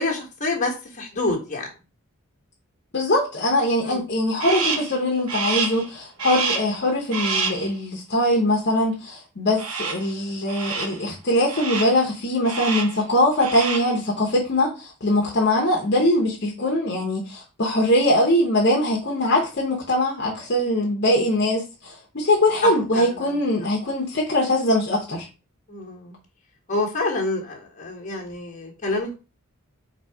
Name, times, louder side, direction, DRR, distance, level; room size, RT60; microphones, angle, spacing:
voice 1, 0.0-1.7 3.8-4.1 22.6-23.4 25.7-26.1 26.7-29.2, left 2 dB, 35° left, 1.4 m, -28 dB
voice 2, 2.9-25.3, left 1 dB, 50° left, 0.9 m, -22 dB
Crow, 4.4-5.0 5.3-5.9 6.2-6.8 7.1-7.7 9.6-10.1 10.5-11.0 11.5-12.0 12.4-13.0 13.3-14.0, right 4 dB, 85° right, 1.0 m, -27 dB
4.0 x 2.7 x 4.7 m
head